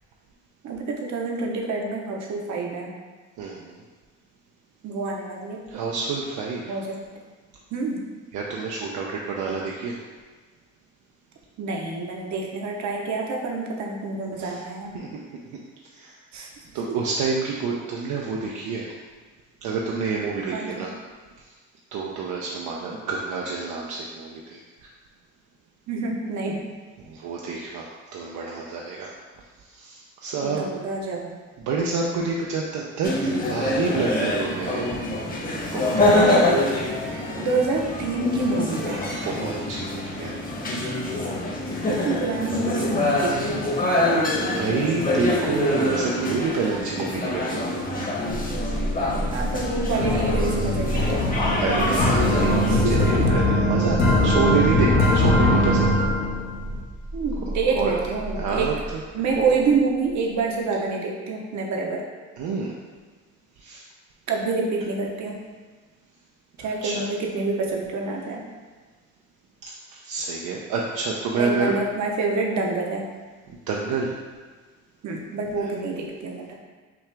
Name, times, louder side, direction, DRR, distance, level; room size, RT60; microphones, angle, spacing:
voice 1, 0.6-2.9 4.8-6.0 6.7-7.0 7.7-8.1 11.6-15.0 16.3-16.5 16.9-17.0 20.5-20.9 25.9-26.7 30.4-31.3 36.2-36.6 37.1-39.1 41.9-43.8 49.0-51.3 52.7-53.3 57.1-58.7 59.1-62.0 64.3-65.4 66.6-68.4 71.3-73.1 75.0-76.5, right 3 dB, 65° right, 0 dB, 0.9 m, -27 dB
voice 2, 3.4-3.8 5.7-6.8 8.3-10.0 14.4-14.6 14.9-15.1 15.9-16.1 16.7-18.9 19.6-20.9 21.9-24.6 27.0-29.1 29.7-30.7 31.6-33.1 33.4-34.9 35.7-36.3 38.9-40.3 44.5-47.8 51.6-55.9 57.8-57.9 58.4-59.0 59.4-59.5 62.4-62.8 63.6-63.8 66.6-67.0 69.6-71.7 73.5-74.2 75.6-75.8, right 4 dB, 85° right, -2 dB, 0.6 m, -28 dB
sound 1, 33.0-52.8, left 1 dB, 30° left, 1.0 m, -25 dB
sound 2, 48.3-60.5, right 1 dB, 20° right, 0.7 m, -32 dB
sound 3, 49.1-56.8, left 1 dB, 85° left, 1.2 m, -22 dB
5.9 x 2.4 x 3.3 m, 1.4 s
cardioid pair, 90°, 30 cm